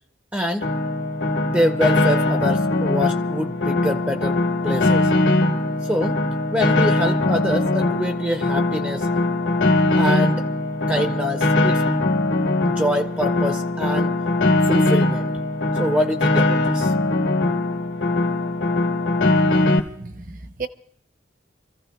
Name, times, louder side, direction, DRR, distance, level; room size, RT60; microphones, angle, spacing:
voice 1, 0.3-0.7 1.5-5.1 5.8-6.2 6.5-9.1 10.0-10.5 10.9-11.8 12.7-14.2 14.7-15.3 15.7-16.9, equal, 10° right, 0.5 m, -25 dB
Piano, 0.6-19.8, left 2 dB, 85° left, 1.3 m, -21 dB
voice 2, 19.5-20.7, right 4 dB, 45° right, 0.7 m, -35 dB
29.0 x 15.0 x 2.2 m
head